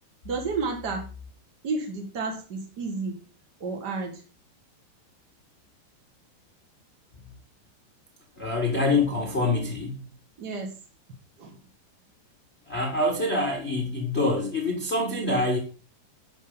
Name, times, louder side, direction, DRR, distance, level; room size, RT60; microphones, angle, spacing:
voice 1, 0.2-1.1 1.6-3.2 3.6-4.2 10.4-10.7 11.4-11.6, right 4 dB, 60° right, 2 dB, 1.0 m, -31 dB
voice 2, 8.4-10.0 12.7-15.6, left 2 dB, 50° left, -1 dB, 0.7 m, -25 dB
11.5 x 5.6 x 5.5 m, 0.35 s
omnidirectional pair, 4.8 m